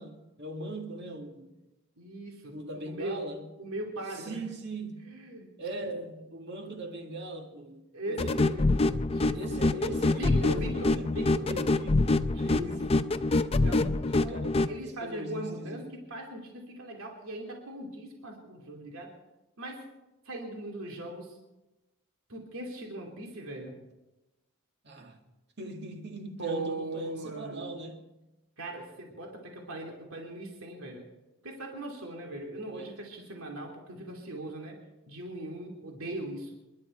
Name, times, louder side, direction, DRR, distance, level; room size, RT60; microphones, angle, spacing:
voice 1, 0.0-1.5 2.5-3.5 4.1-5.2 5.6-8.8 9.3-13.0 14.1-16.0 24.8-25.2 25.6-28.0 32.7-32.9, right 2 dB, 55° right, 2.0 m, -40 dB
voice 2, 2.0-3.2 3.6-4.4 5.1-5.5 5.8-5.9 7.9-8.7 9.1-9.8 10.1-11.6 12.3-12.8 13.6-14.4 14.7-19.1 19.6-19.9 20.2-21.4 22.3-23.8 26.4-27.7 28.6-31.0 31.4-34.8 35.1-36.6, right 1 dB, 75° right, 2.8 m, -39 dB
sound 1, 8.2-14.7, left 2 dB, 30° left, 0.5 m, -26 dB
28.5 x 11.5 x 4.4 m
head